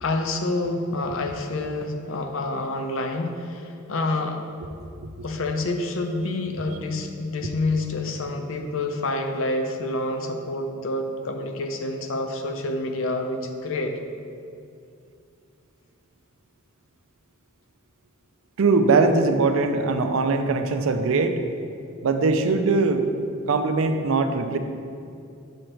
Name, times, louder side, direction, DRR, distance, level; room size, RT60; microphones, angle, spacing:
voice 1, 0.0-4.4 5.2-14.0, left 2 dB, 65° left, 5 dB, 0.6 m, -28 dB
voice 2, 18.6-21.4 22.0-23.0 23.5-24.6, right 3 dB, 70° right, 7 dB, 0.5 m, -21 dB
6.4 x 6.4 x 3.0 m, 2.5 s
head